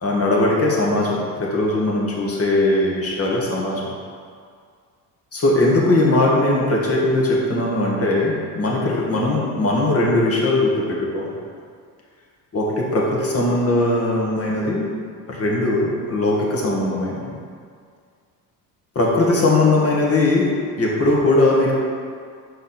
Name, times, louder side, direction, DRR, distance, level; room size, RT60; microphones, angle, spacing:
voice 1, 0.0-3.9 5.3-11.4 12.5-14.9 15.3-17.4 19.0-21.7, left 2 dB, 35° left, -3 dB, 1.7 m, -19 dB
6.4 x 5.0 x 4.3 m, 2.1 s
cardioid pair, 100°, 40 cm